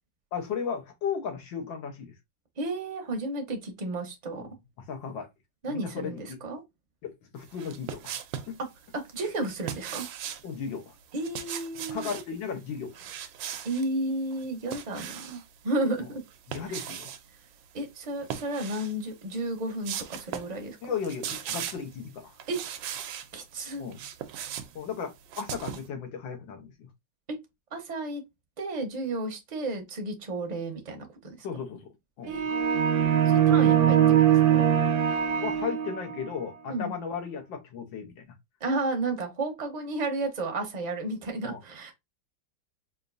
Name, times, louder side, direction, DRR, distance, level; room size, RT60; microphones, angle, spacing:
voice 1, 0.3-2.1 4.4-4.5 4.9-5.3 5.7-6.4 7.0-8.1 8.5-8.6 10.4-11.0 11.9-13.0 16.5-17.1 20.8-22.4 23.8-24.0 24.8-26.9 31.4-31.9 32.2-32.5 35.4-38.3 41.4-41.6, left 6 dB, 85° left, 1.7 m, -35 dB
voice 2, 2.6-4.4 5.6-6.6 8.9-10.0 11.1-12.1 13.6-16.2 16.6-16.7 17.7-20.8 22.5-22.6 23.3-23.8 27.3-27.4 27.7-28.2 28.6-31.4 32.3-34.7 36.7-36.9 38.6-41.9, right 2 dB, 35° right, 0.7 m, -33 dB
sound 1, 7.5-8.6 9.4-10.5 11.1-12.3 12.9-13.9 14.3-15.5 16.3-17.2 18.2-19.0 19.4-19.5 19.8-20.6 20.9-21.9 22.4-23.3 23.7-25.9, right 9 dB, 85° right, 1.4 m, -38 dB
sound 2, 32.3-36.3, right 9 dB, 65° right, 1.1 m, -22 dB
5.1 x 2.6 x 2.5 m
omnidirectional pair, 2.0 m